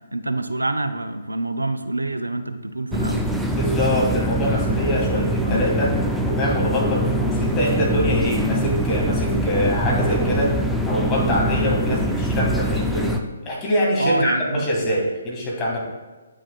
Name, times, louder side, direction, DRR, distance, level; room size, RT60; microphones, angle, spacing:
voice 1, 0.1-3.2 5.4-5.7 11.9-12.1 14.0-14.7, right 2 dB, 85° right, 9 dB, 0.4 m, -26 dB
sound 1, 2.9-13.2, equal, ahead, 0.4 m, -23 dB
voice 2, 3.5-5.9 6.2-10.5 10.9-13.2 13.4-15.9, equal, 20° left, -3 dB, 1.6 m, -24 dB
8.4 x 6.2 x 2.3 m, 1.2 s
figure-of-eight pair, 135°, 0 cm